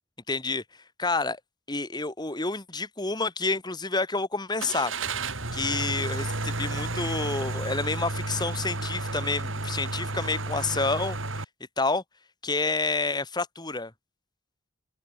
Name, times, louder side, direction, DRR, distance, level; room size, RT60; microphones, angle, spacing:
voice 1, 0.3-0.6 1.0-1.4 1.7-4.9 5.5-11.2 11.8-12.0 12.4-13.9, left 3 dB, 20° left, 1.8 m, -29 dB
Car / Engine starting, 4.6-11.4, right 2 dB, 70° right, 4.4 m, -32 dB
open air
head